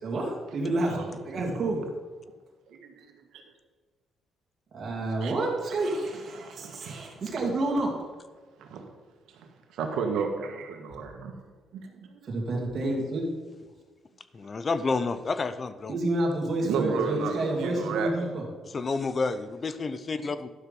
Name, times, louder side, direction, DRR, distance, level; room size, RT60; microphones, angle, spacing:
voice 1, 0.0-1.8 4.7-8.0 12.3-13.3 15.9-18.4, right 2 dB, 50° right, -3 dB, 2.3 m, -29 dB
voice 2, 2.7-3.4 5.2-5.3 6.3-7.0 8.6-8.8 9.3-11.3 11.7-12.2 16.6-18.3, right 5 dB, 80° right, 4 dB, 1.5 m, -33 dB
voice 3, 14.3-15.9 18.7-20.5, left 4 dB, 35° left, 13 dB, 0.7 m, -29 dB
11.5 x 6.0 x 5.4 m, 1.4 s
cardioid pair, 90°, 0 cm